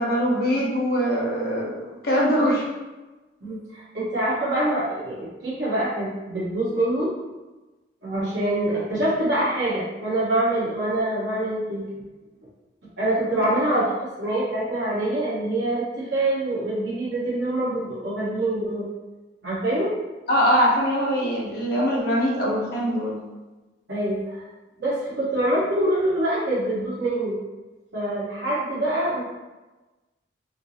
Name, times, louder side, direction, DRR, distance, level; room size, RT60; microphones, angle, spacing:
voice 1, 0.0-2.7 20.3-23.2, equal, 60° left, -4 dB, 0.9 m, -22 dB
voice 2, 3.4-7.1 8.0-11.8 13.0-13.9 14.2-18.9 19.4-19.9 23.9-24.4 24.8-27.3 27.9-29.2, right 1 dB, 85° right, -9 dB, 1.2 m, -25 dB
4.3 x 2.0 x 2.7 m, 1.1 s
head